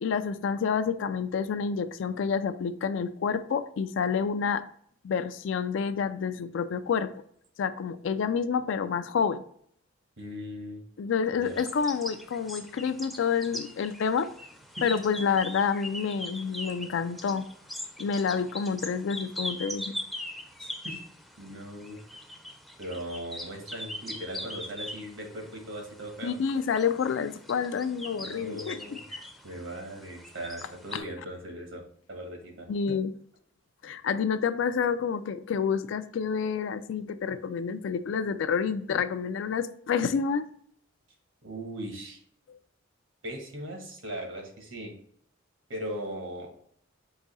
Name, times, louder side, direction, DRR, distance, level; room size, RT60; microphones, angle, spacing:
voice 1, 0.0-4.6 5.0-7.1 7.6-9.4 11.0-14.3 14.8-17.5 18.0-20.0 26.2-29.2 30.9-31.0 32.7-33.1 33.8-40.5 42.5-42.6, left 6 dB, 65° left, 12 dB, 0.3 m, -28 dB
voice 2, 10.2-10.8 11.3-11.6 20.6-21.0 21.4-22.0 22.8-26.4 28.1-29.0 29.4-31.8 32.1-33.0 33.8-33.9 41.4-42.2 43.2-44.9 45.7-46.5, equal, 75° right, 1 dB, 1.3 m, -39 dB
sound 1, 11.5-31.0, left 1 dB, ahead, 0.5 m, -41 dB
4.8 x 2.7 x 4.0 m, 0.63 s
head